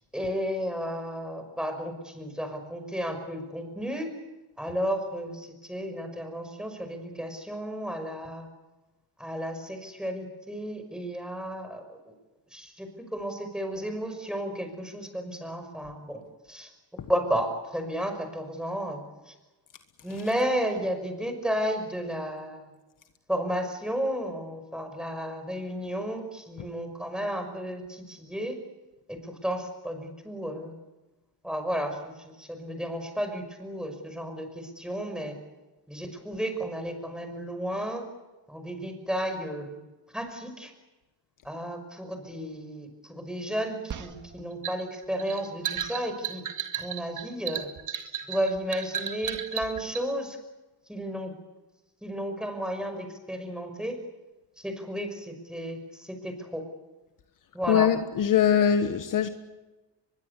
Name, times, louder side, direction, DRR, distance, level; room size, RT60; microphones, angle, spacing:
voice 1, 0.1-4.1 4.6-8.5 9.2-12.1 12.5-16.2 16.5-16.7 17.1-19.4 20.0-22.7 23.3-28.6 29.1-30.7 31.4-35.4 35.9-38.1 38.5-39.8 40.1-40.7 41.4-46.4 46.7-47.7 48.3-50.4 50.9-51.3 52.0-54.0 54.6-56.6 57.5-57.9, equal, ahead, 5.6 m, -33 dB
sound 1, 43.9-50.1, right 9 dB, 45° right, 2.2 m, -34 dB
voice 2, 57.7-59.3, left 8 dB, 50° left, 1.5 m, -22 dB
23.5 x 22.5 x 8.3 m
cardioid pair, 105°, 41 cm